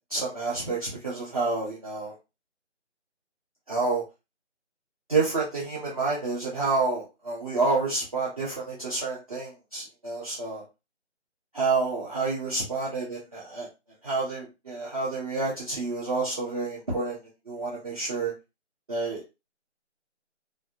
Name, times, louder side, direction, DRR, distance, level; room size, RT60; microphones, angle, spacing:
voice 1, 0.1-2.2 3.7-4.0 5.1-10.6 11.5-13.7 14.0-17.2 17.5-18.3 18.9-19.4, right 3 dB, 30° right, -7 dB, 0.8 m, -29 dB
3.4 x 2.6 x 2.3 m, 0.26 s
figure-of-eight pair, 160°, 36 cm